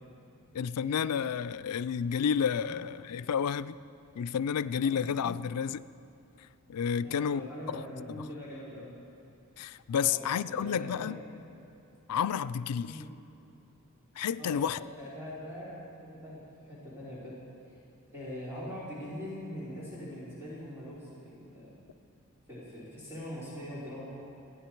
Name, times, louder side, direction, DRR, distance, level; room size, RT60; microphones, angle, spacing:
voice 1, 0.5-3.8 4.2-5.9 6.7-7.8 9.6-11.2 12.1-13.0 14.2-14.8, left 7 dB, 85° left, 0.4 m, -30 dB
voice 2, 7.0-8.9 10.0-11.2 12.8-13.1 14.4-15.8 16.2-17.3 18.1-21.7 22.5-24.1, left 1 dB, 10° right, 3.6 m, -42 dB
27.5 x 10.0 x 4.6 m
head